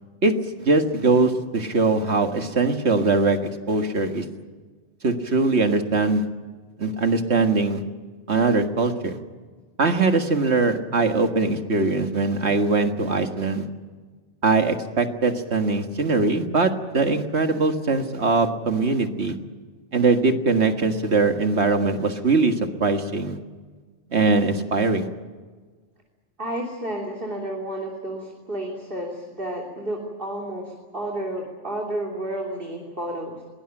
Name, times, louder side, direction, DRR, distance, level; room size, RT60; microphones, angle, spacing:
voice 1, 0.6-3.4 3.7-4.3 5.0-6.3 6.8-7.8 8.3-9.2 9.8-13.7 14.4-19.4 19.9-23.4 24.1-25.1, right 3 dB, 65° right, 6 dB, 2.0 m, -21 dB
voice 2, 26.4-33.4, right 1 dB, 50° right, 0 dB, 3.3 m, -31 dB
22.5 x 19.5 x 8.9 m, 1.4 s
omnidirectional pair, 1.2 m